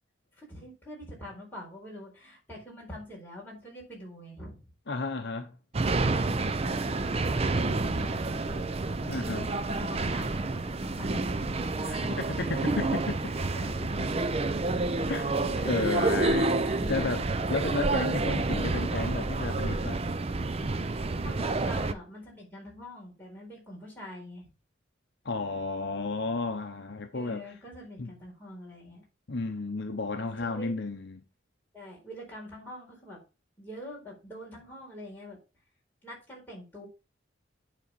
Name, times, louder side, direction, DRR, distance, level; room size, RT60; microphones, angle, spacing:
voice 1, 0.4-4.6 6.1-6.9 7.5-11.5 13.2-14.1 15.5-15.7 16.7-17.2 21.2-24.5 27.1-29.0 30.4-30.7 31.7-33.2 33.6-35.4 36.0-36.9, equal, 10° left, 4.3 m, -44 dB
voice 2, 4.9-5.5 9.1-9.5 11.8-13.2 15.1-20.0 25.2-27.4 28.0-28.1 29.3-31.2, left 3 dB, 60° left, 0.8 m, -33 dB
sound 1, 5.7-21.9, right 3 dB, 30° right, 0.5 m, -29 dB
9.1 x 4.2 x 5.2 m
head